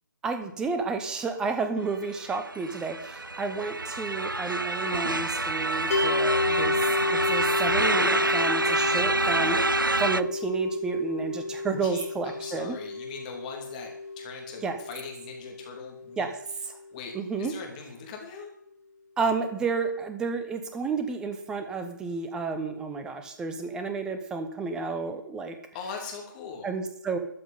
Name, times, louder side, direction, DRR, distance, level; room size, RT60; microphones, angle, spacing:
voice 1, 0.2-12.8 14.6-14.8 16.2-16.4 16.6-16.8 17.1-17.5 19.2-25.6 26.6-27.2, right 4 dB, 5° right, 7 dB, 0.9 m, -31 dB
sound 1, 2.0-10.2, right 2 dB, 90° right, 0.5 m, -27 dB
sound 2, 5.9-17.1, left 3 dB, 40° left, 2.9 m, -31 dB
voice 2, 11.8-16.3 16.9-18.5 25.7-26.7, left 5 dB, 25° left, 2 dB, 2.9 m, -41 dB
13.5 x 6.3 x 9.4 m, 0.71 s
figure-of-eight pair, 140°, 11 cm